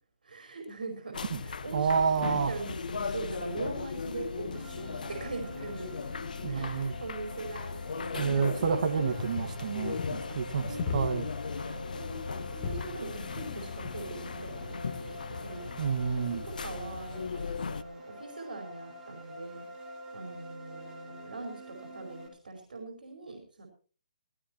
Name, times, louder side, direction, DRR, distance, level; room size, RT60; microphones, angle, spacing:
voice 1, 0.2-1.2 1.4-6.0 6.5-9.3 10.7-15.7 16.3-19.7 20.1-21.5 21.8-23.7, right 3 dB, 85° right, 3 dB, 5.1 m, -42 dB
sound 1, 1.1-17.8, left 5 dB, 75° left, 1.1 m, -38 dB
voice 2, 1.7-2.6 6.4-7.0 8.1-11.3 15.8-16.4, right 6 dB, 60° right, 7 dB, 2.0 m, -29 dB
sound 2, 4.5-22.3, equal, 15° right, 4.9 m, -47 dB
sound 3, 8.6-8.7 9.2-9.7 10.0-10.2 10.8-11.3 11.6-11.8 12.2-12.9 13.3-13.6 13.8-14.0 14.8-15.0, left 5 dB, 35° left, 3.6 m, -37 dB
18.5 x 17.0 x 3.1 m, 0.39 s
hypercardioid pair, 155°, 5 cm